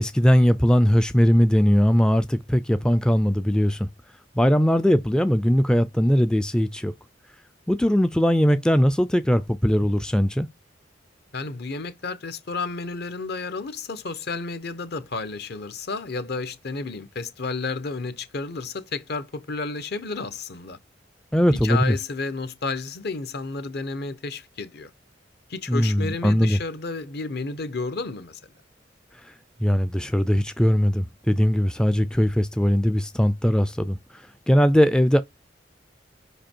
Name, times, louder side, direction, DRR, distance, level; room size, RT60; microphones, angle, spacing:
voice 1, 0.0-3.9 4.4-6.9 7.7-10.5 21.3-21.9 25.7-26.6 29.2-29.3 29.6-35.2, equal, 5° left, 0.3 m, -20 dB
voice 2, 11.3-20.8 21.6-24.9 25.5-28.4, left 3 dB, 60° left, 0.9 m, -31 dB
5.3 x 5.1 x 4.4 m
head